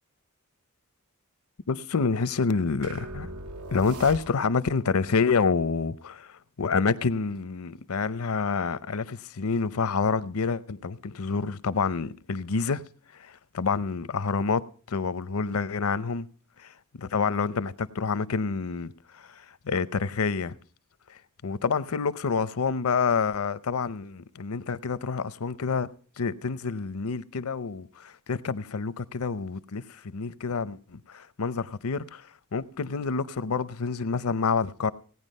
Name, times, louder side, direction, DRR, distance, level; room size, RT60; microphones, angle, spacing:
voice 1, 1.7-3.3 3.7-12.8 13.1-16.3 16.6-20.5 21.1-25.9 26.2-34.9, left 5 dB, 70° left, 0.6 m, -28 dB
sound 1, 2.8-4.7, right 2 dB, 85° right, 1.0 m, -40 dB
17.0 x 9.6 x 5.3 m
head